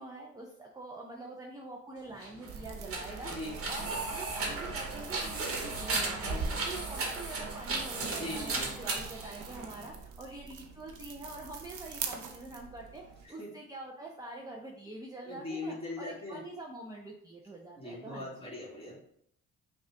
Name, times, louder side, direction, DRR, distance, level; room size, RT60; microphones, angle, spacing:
voice 1, 0.0-3.3 3.7-18.3, right 2 dB, 10° right, -2 dB, 0.6 m, -45 dB
sound 1, 2.1-10.0, right 3 dB, 45° right, 1.2 m, -36 dB
sound 2, 2.5-13.3, right 6 dB, 80° right, 0.7 m, -45 dB
voice 2, 3.2-3.5 6.2-6.6 8.1-8.7 13.2-13.5 15.2-16.4 17.8-19.0, left 2 dB, 20° left, -4 dB, 1.8 m, -40 dB
5.5 x 2.4 x 3.3 m, 0.70 s
cardioid pair, 90°, 30 cm